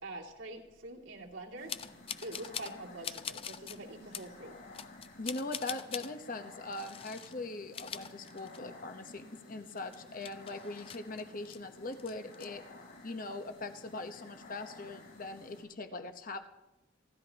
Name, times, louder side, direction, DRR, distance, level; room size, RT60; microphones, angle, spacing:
voice 1, 0.0-1.7 2.2-4.6, right 2 dB, 80° right, -1 dB, 2.5 m, -45 dB
sound 1, 1.6-15.6, left 2 dB, 80° left, 6.4 m, -53 dB
sound 2, 1.7-2.8 3.0-3.8 4.1-4.3 4.7-6.1 6.7-7.3 7.6-8.8 9.2-9.3 9.7-11.6 11.9-12.5, left 8 dB, 30° left, 0.4 m, -43 dB
voice 2, 5.2-12.6 13.0-16.4, left 2 dB, 45° left, 7 dB, 1.0 m, -41 dB
28.0 x 12.0 x 2.9 m, 1.0 s
head